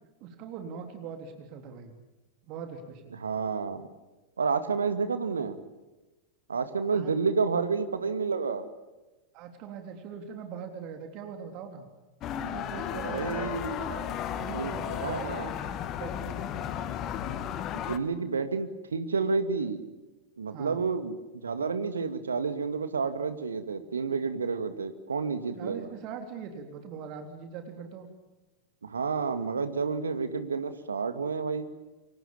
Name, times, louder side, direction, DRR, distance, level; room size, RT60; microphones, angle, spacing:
voice 1, 0.2-1.9 2.5-3.2 6.9-7.1 9.3-11.9 12.5-13.5 13.8-14.0 14.4-16.9 20.5-20.8 25.6-28.1, right 6 dB, 40° right, 5 dB, 3.5 m, -41 dB
voice 2, 3.1-3.9 4.4-5.6 6.5-8.7 13.0-13.8 14.5-14.7 15.0-15.5 17.7-19.9 20.4-21.2 21.4-25.9 28.8-31.7, right 5 dB, 70° right, 10 dB, 2.2 m, -30 dB
sound 1, 12.2-18.0, left 9 dB, 35° left, 1.8 m, -34 dB
30.0 x 24.5 x 7.2 m, 1.1 s
figure-of-eight pair, 90°, 0 cm